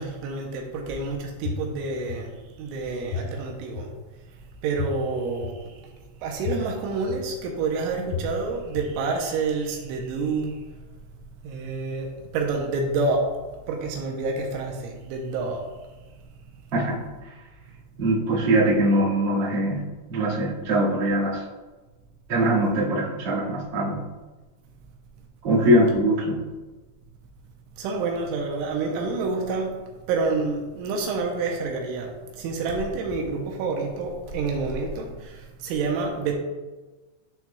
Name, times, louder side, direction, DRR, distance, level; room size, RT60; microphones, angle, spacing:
voice 1, 0.0-2.3 2.6-3.9 4.6-5.8 6.2-10.6 11.4-13.3 13.7-15.6 27.8-29.7 30.1-36.4, right 3 dB, 80° right, 1 dB, 3.0 m, -28 dB
sound 1, 1.4-1.5 2.1-2.2 3.1-3.2 3.8-3.9 4.8-4.9 5.4-5.5 6.4-6.5 7.1-7.2 8.1-8.2 8.8-8.9, left 8 dB, 85° left, 2.8 m, -29 dB
voice 2, 18.0-21.4 22.3-24.0 25.4-26.4, right 1 dB, 60° right, -10 dB, 1.2 m, -22 dB
10.5 x 4.4 x 2.3 m, 1.2 s
omnidirectional pair, 5.8 m